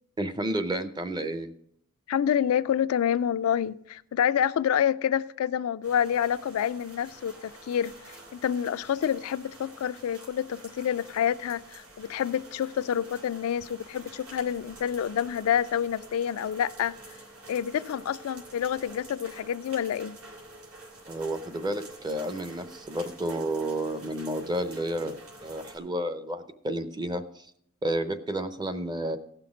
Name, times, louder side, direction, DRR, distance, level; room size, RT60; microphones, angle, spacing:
voice 1, 0.2-1.5 21.1-27.5 27.8-29.2, right 1 dB, 20° right, 0.6 m, -31 dB
voice 2, 2.1-16.9 17.5-20.2, left 9 dB, 70° left, 0.3 m, -28 dB
sound 1, 5.8-25.8, right 2 dB, 70° right, 2.7 m, -48 dB
16.0 x 6.0 x 4.9 m
head